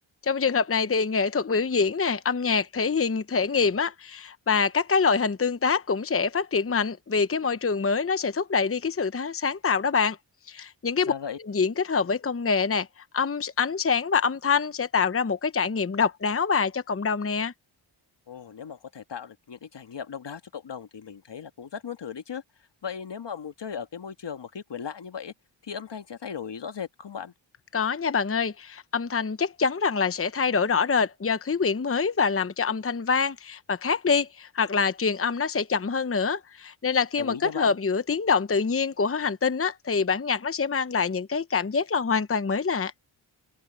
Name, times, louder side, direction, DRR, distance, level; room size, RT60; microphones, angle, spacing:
voice 1, 0.3-10.2 10.5-11.1 11.5-12.9 13.1-17.5 27.7-42.9, left 5 dB, 25° left, 0.9 m, -25 dB
voice 2, 11.1-11.4 18.3-22.4 22.8-25.3 25.6-27.3 37.2-37.8, left 7 dB, 55° left, 1.7 m, -37 dB
open air
cardioid pair, 50°, 49 cm